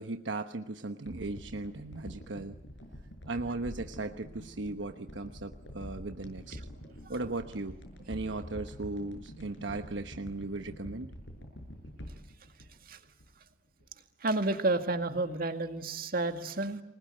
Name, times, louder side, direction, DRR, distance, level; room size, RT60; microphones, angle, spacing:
voice 1, 0.0-2.6 3.3-6.6 7.1-7.8 8.1-11.1, right 2 dB, 75° right, 7 dB, 1.2 m, -37 dB
sound 1, 1.0-13.5 13.8-13.9, equal, 80° left, 7.4 m, -47 dB
voice 2, 14.2-16.8, right 2 dB, 50° right, 7 dB, 2.1 m, -30 dB
28.5 x 21.0 x 9.0 m, 0.95 s
head